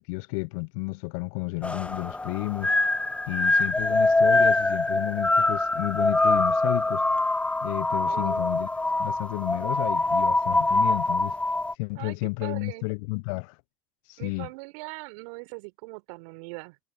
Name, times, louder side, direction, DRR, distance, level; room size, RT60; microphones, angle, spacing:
voice 1, 0.0-2.7 3.3-7.0 7.6-8.7 9.0-11.4 11.8-13.6 14.1-14.5, left 29 dB, 55° left, 0.7 m, -32 dB
sound 1, 1.6-11.7, left 2 dB, 5° left, 0.5 m, -24 dB
voice 2, 8.1-8.5 11.9-12.9 14.2-16.8, right 28 dB, 60° right, 3.9 m, -41 dB
hypercardioid pair, 80°, 20 cm